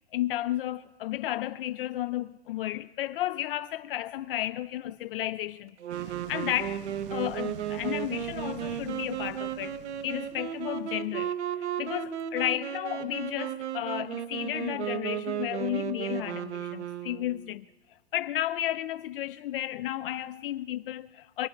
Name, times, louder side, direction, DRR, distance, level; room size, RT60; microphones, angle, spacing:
voice 1, 0.1-6.8 7.1-9.8 10.0-17.7 18.1-21.5, left 13 dB, 55° left, 0.5 m, -33 dB
Wind instrument woodwind instrument, 5.8-17.5, right 10 dB, 90° right, 1.1 m, -34 dB
sound 1, 5.9-10.9, right 12 dB, 55° right, 0.7 m, -45 dB
22.0 x 11.0 x 5.2 m
hypercardioid pair, 145°, 33 cm